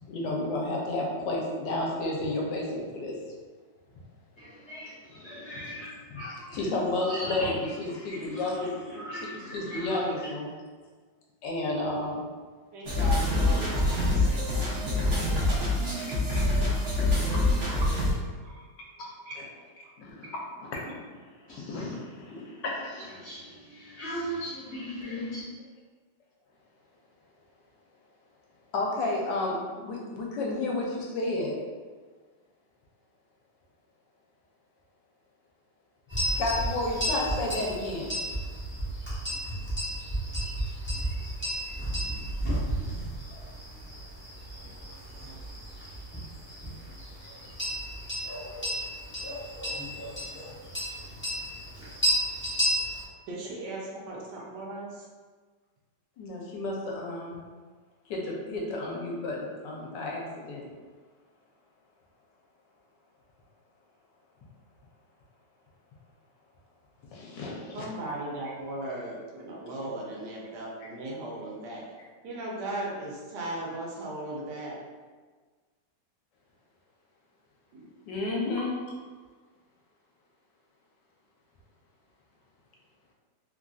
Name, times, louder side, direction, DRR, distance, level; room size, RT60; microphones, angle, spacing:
voice 1, 0.1-3.1 6.5-7.5 7.8-8.7 9.5-10.5 11.4-12.2 16.3-16.5 17.3-17.4 19.0-19.1 20.0-20.3 20.6-20.8 21.7-23.1 28.7-31.6 36.4-38.1 56.2-57.4 58.1-60.6 67.1-67.8 78.1-78.7, left 2 dB, 80° left, -2 dB, 1.3 m, -31 dB
voice 2, 4.4-6.7 6.9-10.3 21.5-22.0 23.0-25.5, equal, 50° left, -10 dB, 1.0 m, -39 dB
voice 3, 12.7-15.6 15.8-16.0 17.8-17.9 18.4-18.7 19.3-19.4 53.3-55.1 67.7-71.8 72.2-74.8 77.7-77.9, right 1 dB, 75° right, -3 dB, 1.3 m, -37 dB
sound 1, 12.9-18.1, left 1 dB, 50° right, 0.8 m, -25 dB
sound 2, 36.1-53.0, equal, 10° left, 0.6 m, -33 dB
3.2 x 2.5 x 2.3 m, 1.4 s
omnidirectional pair, 1.9 m